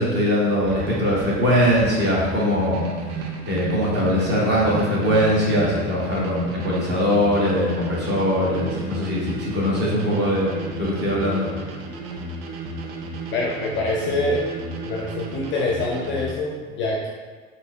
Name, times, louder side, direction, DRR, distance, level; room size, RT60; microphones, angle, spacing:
voice 1, 0.0-2.9 3.5-10.5 10.8-11.5, equal, 25° right, -6 dB, 1.2 m, -21 dB
sound 1, 0.6-16.3, right 2 dB, 55° right, 0.5 m, -34 dB
voice 2, 13.3-14.4 14.8-17.1, left 2 dB, 30° left, -2 dB, 0.5 m, -25 dB
4.2 x 2.7 x 2.2 m, 1.5 s
figure-of-eight pair, 70°, 38 cm